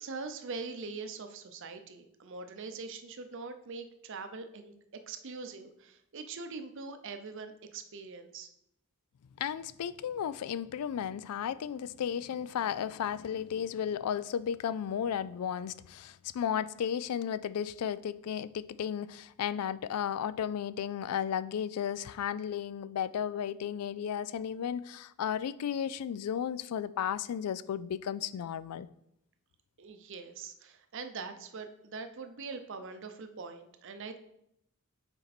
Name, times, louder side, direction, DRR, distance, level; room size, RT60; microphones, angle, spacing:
voice 1, 0.0-4.7 5.1-8.5 29.8-34.2, right 4 dB, 55° right, 0.6 m, -43 dB
voice 2, 9.4-28.9, left 8 dB, 85° left, 0.3 m, -34 dB
6.6 x 4.5 x 4.1 m
head